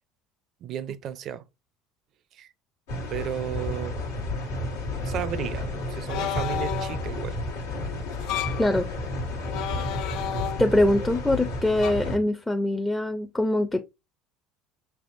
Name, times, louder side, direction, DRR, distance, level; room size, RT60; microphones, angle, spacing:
voice 1, 0.6-1.4 2.3-2.5 3.1-4.0 4.8-7.4 9.7-9.9, right 10 dB, 50° right, 0.4 m, -34 dB
sound 1, 2.9-12.2, left 1 dB, 80° left, 1.3 m, -32 dB
sound 2, 6.1-7.1 8.1-8.7 9.4-10.9 11.8-11.9, left 10 dB, 65° left, 0.5 m, -32 dB
voice 2, 10.6-13.9, left 1 dB, 10° left, 0.5 m, -23 dB
5.6 x 3.4 x 2.5 m
hypercardioid pair, 75°, 0 cm